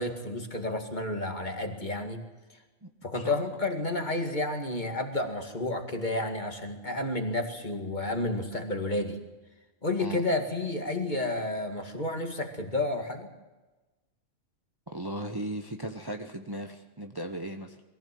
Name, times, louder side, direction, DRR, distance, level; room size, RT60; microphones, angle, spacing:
voice 1, 0.0-2.2 3.0-9.2 9.8-13.3, left 2 dB, 35° left, 4 dB, 2.2 m, -31 dB
voice 2, 2.8-3.4 10.0-10.2 14.9-17.8, right 1 dB, 20° right, 5 dB, 1.1 m, -37 dB
22.0 x 15.5 x 7.7 m, 1.1 s
omnidirectional pair, 1.3 m